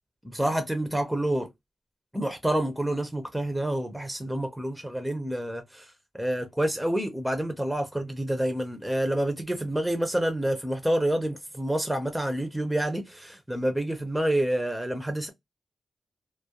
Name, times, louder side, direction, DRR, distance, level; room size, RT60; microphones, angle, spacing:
voice 1, 0.3-1.5 2.1-15.3, right 1 dB, ahead, 0.4 m, -28 dB
2.2 x 2.0 x 2.7 m
wide cardioid pair, 160°, 0 cm